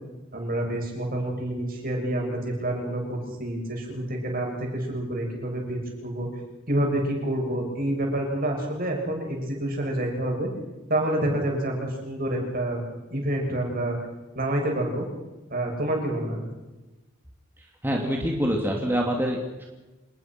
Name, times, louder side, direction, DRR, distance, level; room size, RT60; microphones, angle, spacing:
voice 1, 0.3-6.3 6.7-10.5 10.9-12.8 13.1-14.0 14.3-15.0 15.5-16.4, right 1 dB, 45° right, 1 dB, 7.4 m, -28 dB
voice 2, 17.8-19.7, equal, 10° right, 0 dB, 2.6 m, -25 dB
27.5 x 20.0 x 6.1 m, 1.1 s
head